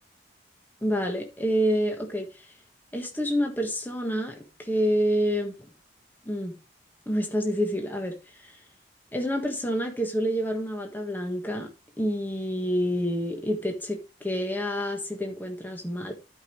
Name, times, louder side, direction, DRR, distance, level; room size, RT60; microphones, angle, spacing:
voice 1, 0.8-2.3 2.9-5.6 6.2-6.5 7.1-8.1 8.4-8.5 9.1-11.7 12.0-16.1, equal, 10° left, 1.5 m, -28 dB
12.5 x 5.4 x 3.2 m
head